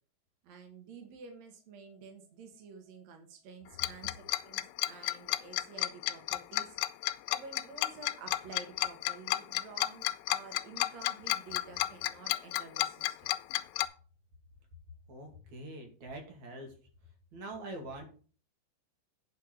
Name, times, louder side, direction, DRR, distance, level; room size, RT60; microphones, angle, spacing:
voice 1, 0.4-6.8 7.3-13.3, right 4 dB, 70° right, 3 dB, 1.7 m, -50 dB
Tick-tock, 3.8-13.9, left 16 dB, 85° left, 2.9 m, -31 dB
voice 2, 15.1-16.7 17.3-18.1, right 1 dB, 45° right, 2 dB, 3.1 m, -44 dB
9.3 x 5.7 x 6.4 m, 0.40 s
omnidirectional pair, 5.4 m